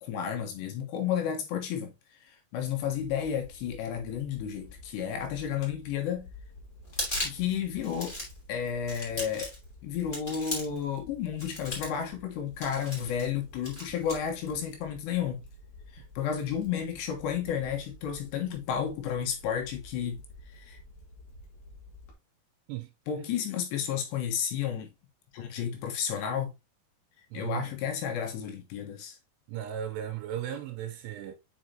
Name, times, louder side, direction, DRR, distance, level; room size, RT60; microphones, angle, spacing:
voice 1, 0.0-6.3 7.2-8.2 8.5-9.5 9.8-15.4 15.9-20.2 20.5-20.8 23.1-24.9 25.3-26.5 27.3-29.2, left 8 dB, 75° left, 3.4 m, -32 dB
Fire, 2.8-22.1, left 1 dB, 55° left, 2.6 m, -51 dB
sound 1, 6.8-7.5 7.8-8.4 8.9-9.6 10.1-10.8 11.4-12.0 12.6-13.3 13.6-14.2, left 1 dB, 15° left, 2.4 m, -36 dB
voice 2, 27.3-27.8 29.5-31.3, right 10 dB, 85° right, 2.8 m, -36 dB
7.2 x 5.1 x 2.8 m
omnidirectional pair, 5.1 m